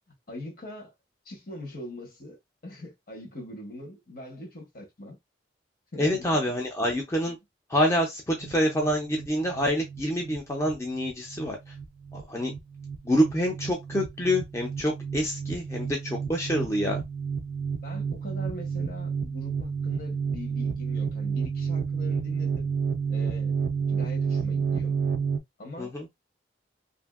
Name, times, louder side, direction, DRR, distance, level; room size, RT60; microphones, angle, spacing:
voice 1, 0.3-0.9 1.2-5.2 5.9-6.3 17.8-22.7 23.1-23.5 23.9-25.0 25.6-25.9, left 1 dB, 55° left, 1.0 m, -41 dB
voice 2, 6.0-7.4 7.7-11.7 12.1-12.5 13.0-17.0 25.8-26.1, equal, 15° left, 0.4 m, -27 dB
sound 1, 8.4-25.4, right 6 dB, 50° right, 0.3 m, -30 dB
2.7 x 2.6 x 2.3 m
head